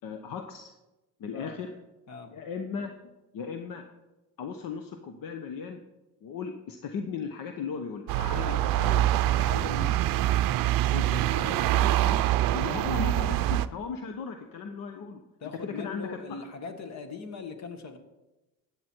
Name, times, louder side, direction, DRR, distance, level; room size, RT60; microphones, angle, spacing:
voice 1, 0.0-0.7 1.2-1.7 2.3-2.9 3.3-3.8 4.4-5.8 6.2-9.0 10.9-15.2 15.6-16.1 16.4-16.5, left 5 dB, 60° left, 6 dB, 1.0 m, -37 dB
sound 1, 8.1-13.7, right 14 dB, 65° right, 0.6 m, -25 dB
voice 2, 9.2-10.0 15.4-18.0, left 4 dB, 45° left, 8 dB, 1.6 m, -40 dB
14.5 x 9.1 x 4.5 m, 1.1 s
cardioid pair, 130°, 37 cm